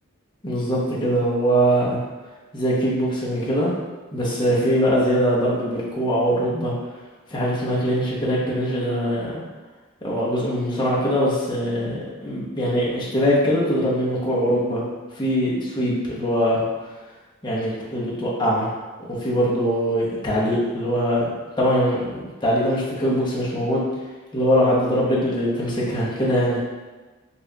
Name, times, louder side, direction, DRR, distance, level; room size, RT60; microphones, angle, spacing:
voice 1, 0.4-2.0 2.5-3.7 4.1-6.7 7.3-9.4 10.0-14.8 15.2-16.6 17.4-18.7 19.1-21.3 21.6-23.9 24.3-26.6, equal, 20° left, -6 dB, 1.0 m, -22 dB
4.2 x 2.5 x 3.4 m, 1.3 s
head